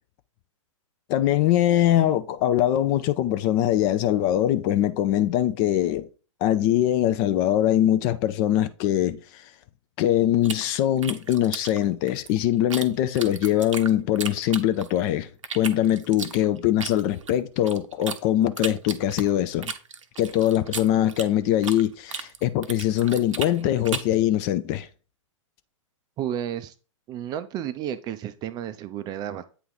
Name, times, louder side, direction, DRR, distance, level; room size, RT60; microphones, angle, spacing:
voice 1, 1.1-6.1 6.4-9.4 10.0-15.3 15.5-19.7 20.2-24.9, left 12 dB, 35° left, 0.5 m, -22 dB
sound 1, 10.4-12.9 13.2-15.0 15.4-18.2 18.6-21.8 22.1-24.2, right 6 dB, 70° right, 0.7 m, -35 dB
voice 2, 26.2-26.7 27.1-29.4, right 10 dB, 25° right, 0.4 m, -32 dB
8.3 x 2.9 x 3.9 m
figure-of-eight pair, 110°, 17 cm